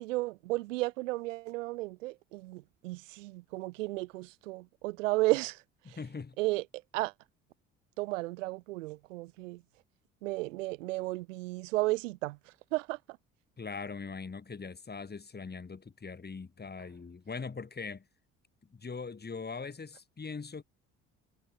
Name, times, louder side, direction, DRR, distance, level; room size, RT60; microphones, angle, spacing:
voice 1, 0.0-5.6 5.9-6.0 6.4-6.6 6.9-7.1 8.0-9.6 10.2-12.4 12.7-13.0, right 20 dB, 80° right, 1.3 m, -33 dB
voice 2, 5.8-6.4 13.6-18.0 18.7-20.6, left 4 dB, 25° left, 3.2 m, -41 dB
hypercardioid pair, 55°, 38 cm